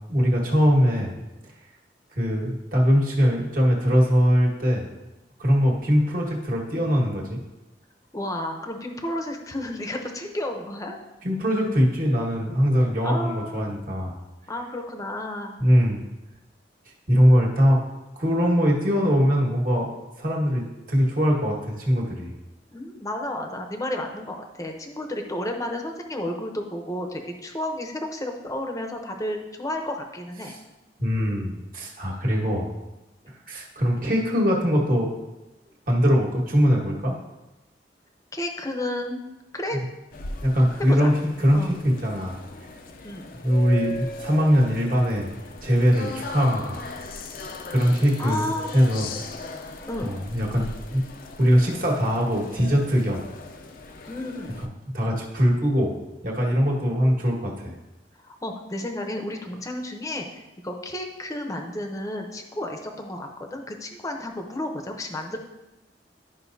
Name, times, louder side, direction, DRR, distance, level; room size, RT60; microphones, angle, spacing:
voice 1, 0.1-1.1 2.2-4.9 5.4-7.4 11.2-14.2 15.6-16.0 17.1-17.8 18.2-19.9 20.2-22.3 30.4-30.6 31.0-32.7 33.3-35.1 35.9-37.2 40.4-42.4 43.4-45.3 45.6-46.8 47.7-48.5 48.7-49.1 50.0-51.0 51.4-53.2 54.6-54.7 54.9-56.0 56.2-57.7, equal, 50° right, -2 dB, 1.7 m, -21 dB
voice 2, 8.1-11.0 13.0-13.7 14.5-15.6 22.7-30.6 38.3-39.2 39.5-39.8 40.9-41.1 41.5-41.7 43.0-43.3 48.2-48.8 49.9-50.2 54.1-54.5 58.2-65.4, left 1 dB, 20° left, 3 dB, 0.8 m, -32 dB
sound 1, 40.1-54.7, left 2 dB, 50° left, 0.6 m, -38 dB
12.0 x 5.4 x 2.7 m, 1.0 s
head